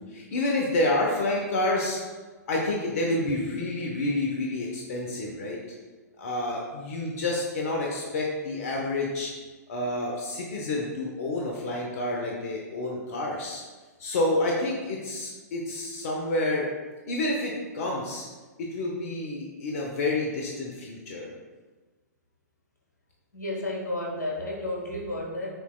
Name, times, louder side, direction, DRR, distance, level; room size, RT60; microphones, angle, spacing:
voice 1, 0.0-2.0 2.5-5.6 6.2-9.3 9.7-13.6 14.0-16.7 17.1-18.3 18.6-21.3, left 2 dB, 55° left, -1 dB, 0.8 m, -29 dB
voice 2, 23.3-25.5, left 1 dB, 85° left, -2 dB, 1.2 m, -32 dB
6.8 x 3.1 x 2.2 m, 1.3 s
hypercardioid pair, 115°, 9 cm